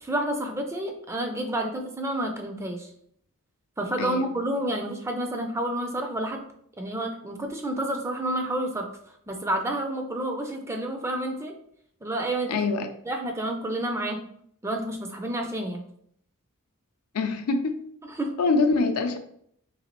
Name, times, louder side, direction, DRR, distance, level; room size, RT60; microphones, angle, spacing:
voice 1, 0.0-2.9 3.8-6.4 6.8-8.9 9.3-11.5 12.0-12.6 13.1-14.2 14.6-15.8 18.2-18.3, right 1 dB, 10° right, 4 dB, 0.4 m, -29 dB
voice 2, 4.0-4.3 12.5-12.9 17.1-17.8 18.4-19.2, left 3 dB, 75° left, 7 dB, 0.5 m, -24 dB
4.0 x 3.2 x 2.9 m, 0.68 s
head